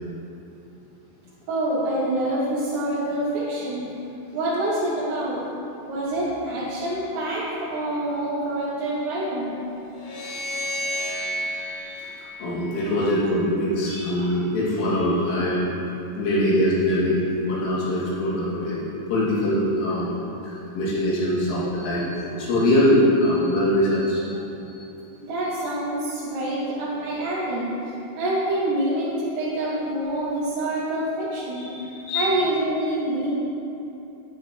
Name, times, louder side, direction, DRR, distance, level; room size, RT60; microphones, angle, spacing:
voice 1, 1.5-3.9 4.3-5.4 5.9-9.5 25.2-27.7 28.2-31.7 32.1-33.4, right 1 dB, 85° right, -12 dB, 4.9 m, -26 dB
sound 1, 9.9-13.2, equal, 60° left, 4.3 m, -31 dB
voice 2, 11.6-15.8 16.2-18.8 19.1-24.4 24.7-24.9 31.5-32.3, left 1 dB, 75° left, -8 dB, 5.0 m, -23 dB
13.0 x 11.0 x 3.2 m, 2.9 s
omnidirectional pair, 5.7 m